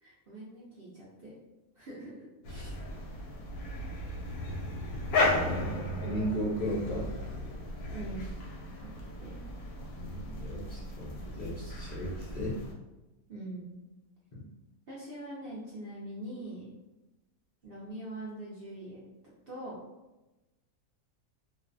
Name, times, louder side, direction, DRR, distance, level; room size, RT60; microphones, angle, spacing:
voice 1, 0.0-1.3 1.8-2.3 7.9-8.3 8.8-8.9 9.2-9.4 13.3-13.8 14.9-16.7 17.6-19.0 19.5-19.8, right 1 dB, 60° right, -8 dB, 0.6 m, -42 dB
sound 1, 2.4-12.7, left 2 dB, 85° left, 1.1 m, -35 dB
voice 2, 5.2-7.1 9.9-12.6 14.3-14.4, equal, 60° left, -9 dB, 0.4 m, -35 dB
2.5 x 2.1 x 2.5 m, 1.0 s
omnidirectional pair, 1.6 m